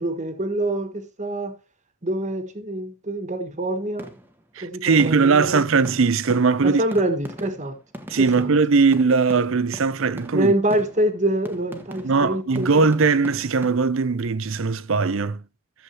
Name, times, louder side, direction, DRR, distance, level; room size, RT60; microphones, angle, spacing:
voice 1, 0.0-1.6 2.0-4.1 4.6-5.6 6.6-7.8 8.2-8.5 10.3-12.8, right 1 dB, 35° right, 1.5 m, -25 dB
sound 1, 4.0-4.5 5.0-5.5 5.8-13.7, equal, 10° right, 1.2 m, -40 dB
voice 2, 4.6-6.8 8.1-10.5 12.0-15.4, right 4 dB, 60° right, 0.6 m, -20 dB
14.5 x 7.3 x 2.9 m
head